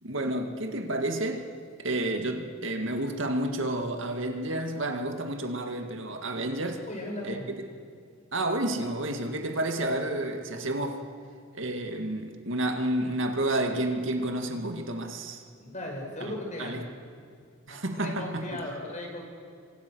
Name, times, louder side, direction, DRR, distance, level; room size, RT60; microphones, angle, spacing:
voice 1, 0.0-1.5 1.8-6.8 7.2-7.3 8.3-11.0 11.5-15.4 16.6-16.8 17.7-18.6, right 1 dB, 65° right, 4 dB, 2.2 m, -30 dB
voice 2, 6.9-7.5 15.6-16.9 17.7-19.2, left 1 dB, 35° left, 1 dB, 6.1 m, -37 dB
30.0 x 25.0 x 6.4 m, 2.3 s
head